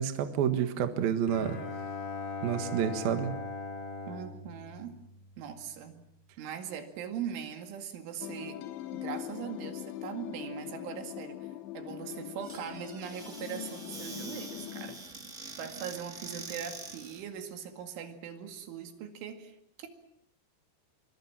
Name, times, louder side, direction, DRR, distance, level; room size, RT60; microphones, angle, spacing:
voice 1, 0.0-1.6 2.4-3.3, right 9 dB, 60° right, 8 dB, 2.9 m, -29 dB
Bowed string instrument, 1.3-5.6, left 3 dB, 60° left, 5.6 m, -40 dB
voice 2, 4.1-4.9 5.4-6.0 6.4-8.6 8.9-11.4 11.7-15.3 15.6-19.9, right 8 dB, 75° right, 6 dB, 4.6 m, -41 dB
sound 1, 8.2-15.0, left 13 dB, 75° left, 3.4 m, -42 dB
Squeak / Cupboard open or close, 12.4-17.3, right 3 dB, 40° right, 1.1 m, -45 dB
25.0 x 24.5 x 7.4 m, 0.74 s
omnidirectional pair, 5.6 m